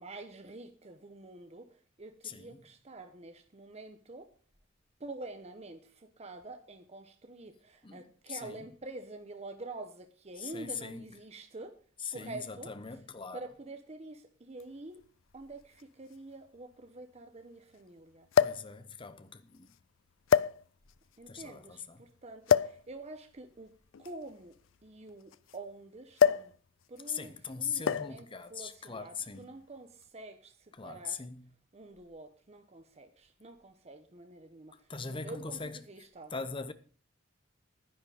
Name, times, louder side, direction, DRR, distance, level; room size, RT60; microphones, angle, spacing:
voice 1, 0.0-1.7 2.0-4.3 5.0-11.8 12.1-12.7 13.3-15.0 15.3-18.3 21.2-24.5 24.8-26.5 26.9-30.5 30.8-31.2 31.7-34.7 35.1-36.3, right 2 dB, 35° right, 1.0 m, -47 dB
voice 2, 2.2-2.6 7.8-8.7 10.4-11.0 12.0-13.4 18.4-19.7 21.3-22.0 27.1-29.6 30.7-31.5 34.9-35.8 36.3-36.7, left 5 dB, 25° left, 0.9 m, -40 dB
sound 1, 14.6-14.7 15.8-15.9 16.1-16.2 18.3-18.7 19.5-19.7 20.3-21.0 22.5-22.8 23.9-25.6 26.2-26.6 26.8-27.1 27.9-28.2 29.2-29.5, left 7 dB, 80° left, 0.4 m, -27 dB
10.5 x 10.5 x 4.9 m
head